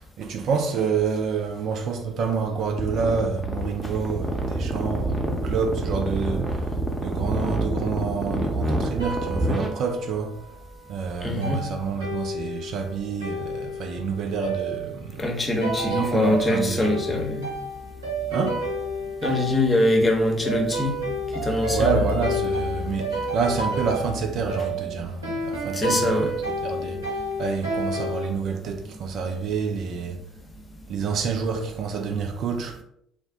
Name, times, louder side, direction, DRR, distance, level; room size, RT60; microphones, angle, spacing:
voice 1, 0.0-10.3 10.9-15.3 15.8-17.1 18.3-18.6 21.7-26.3 26.6-30.2 30.9-32.8, right 5 dB, 55° right, 0.3 m, -28 dB
sound 1, 2.8-9.7, right 1 dB, 15° right, 0.7 m, -27 dB
sound 2, 9.0-10.5 11.4-28.3, right 1 dB, 80° right, 0.8 m, -31 dB
voice 2, 11.2-11.6 15.2-17.5 19.2-21.0 21.3-22.0 25.7-26.3, left 1 dB, 25° left, 0.8 m, -23 dB
2.5 x 2.1 x 3.6 m
figure-of-eight pair, 50°, 0 cm